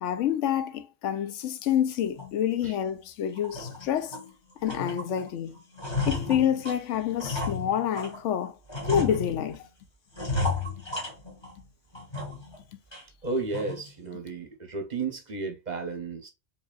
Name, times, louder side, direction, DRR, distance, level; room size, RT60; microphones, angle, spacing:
voice 1, 0.0-4.2 4.6-5.6 6.0-8.6 8.8-9.6, left 10 dB, 90° left, 0.9 m, -28 dB
sound 1, 2.2-2.3 2.8-2.9 3.4-4.3 4.7-5.3 5.6-8.2 8.7-9.7 10.1-11.6 11.9-12.6 12.9-13.0 13.5-13.9, left 3 dB, 25° left, 1.2 m, -33 dB
voice 2, 13.2-16.3, right 3 dB, 45° right, 0.8 m, -33 dB
4.7 x 2.8 x 2.4 m
omnidirectional pair, 1.2 m